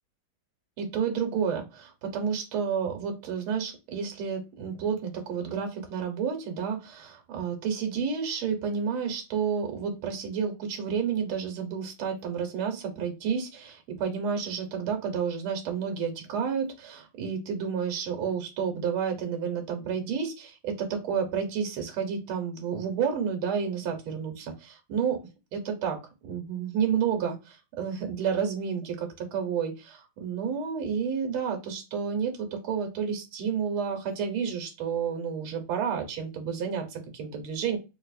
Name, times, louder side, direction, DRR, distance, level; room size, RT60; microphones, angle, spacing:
voice 1, 0.8-25.2 25.5-37.8, right 7 dB, 85° right, 3 dB, 1.8 m, -30 dB
4.2 x 2.6 x 2.4 m, 0.28 s
omnidirectional pair, 2.3 m